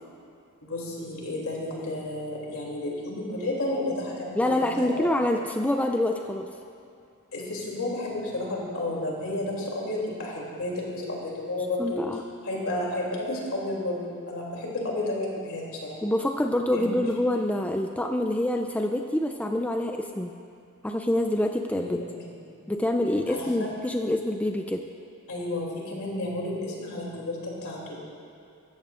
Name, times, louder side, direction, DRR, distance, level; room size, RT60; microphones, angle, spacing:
voice 1, 0.6-5.1 7.3-12.0 12.4-16.0 16.7-17.0 21.8-22.6 23.3-23.7 25.3-28.0, left 1 dB, 70° left, -3 dB, 2.8 m, -32 dB
voice 2, 4.4-6.5 11.8-12.2 16.0-20.3 20.8-22.0 22.7-24.8, left 1 dB, 5° left, 4 dB, 0.3 m, -26 dB
16.0 x 13.5 x 2.5 m, 2.5 s
head